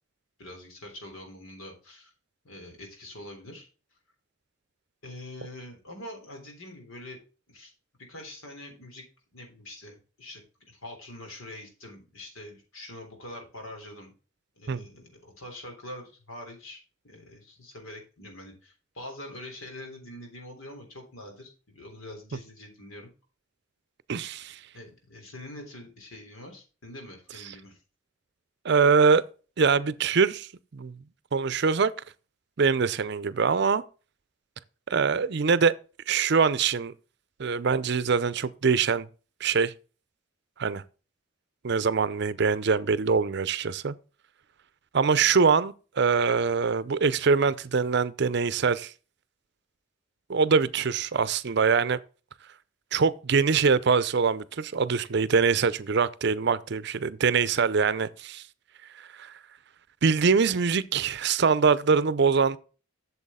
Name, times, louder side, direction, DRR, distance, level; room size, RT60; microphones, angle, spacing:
voice 1, 0.4-2.1 2.4-3.7 5.0-7.2 7.5-7.7 8.1-9.0 9.3-10.4 10.7-14.1 14.6-23.1 24.7-27.8, left 1 dB, 90° left, 3.4 m, -44 dB
voice 2, 24.1-24.6 28.6-29.2 29.6-30.5 30.7-31.0 31.3-31.9 32.6-33.8 34.9-35.7 36.1-36.9 37.4-39.1 39.4-39.7 40.6-40.8 41.6-43.9 44.9-48.9 50.3-52.0 52.9-58.4 59.2-59.3 60.0-62.6, right 5 dB, 55° right, 0.5 m, -23 dB
8.2 x 7.1 x 3.6 m
head